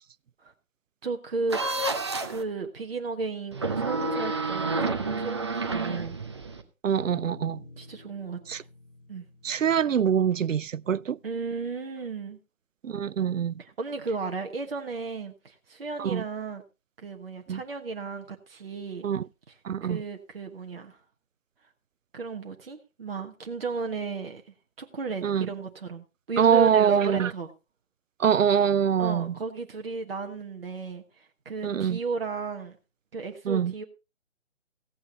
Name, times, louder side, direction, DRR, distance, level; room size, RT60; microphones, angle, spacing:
voice 1, 1.0-1.6 2.2-6.2 7.8-8.7 9.1-9.2 11.2-12.4 13.6-16.6 17.0-19.1 19.5-19.6 19.8-21.0 22.1-27.5 29.0-32.8 33.1-33.8, right 4 dB, 45° right, 1.3 m, -34 dB
sound 1, 1.5-2.4 3.5-6.6, right 3 dB, 20° right, 0.8 m, -29 dB
voice 2, 6.8-7.6 8.5-8.6 9.4-11.2 12.8-13.5 16.0-16.2 17.5-17.6 19.0-19.2 19.6-20.0 25.2-25.5 26.4-27.3 28.2-29.3 31.6-32.0 33.5-33.7, right 8 dB, 70° right, 0.5 m, -24 dB
sound 2, 7.0-11.5, left 2 dB, 40° left, 3.2 m, -49 dB
16.0 x 8.6 x 4.0 m
figure-of-eight pair, 150°, 40 cm